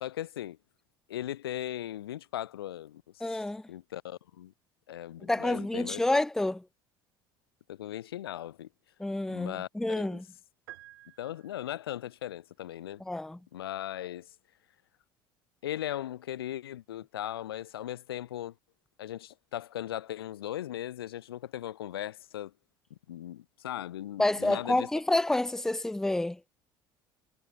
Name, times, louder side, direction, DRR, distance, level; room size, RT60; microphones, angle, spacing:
voice 1, 0.0-0.6 1.1-3.4 3.7-4.5 4.9-6.0 7.7-8.7 9.3-9.7 10.0-10.2 11.2-13.0 13.5-14.3 15.6-18.5 19.0-22.5 23.1-24.9, left 12 dB, 80° left, 0.6 m, -38 dB
voice 2, 3.2-3.7 5.2-6.6 9.0-10.3 13.0-13.4 24.2-26.4, left 2 dB, 5° left, 0.5 m, -29 dB
sound 1, 10.7-12.0, right 16 dB, 75° right, 3.5 m, -51 dB
hypercardioid pair, 65°, 12 cm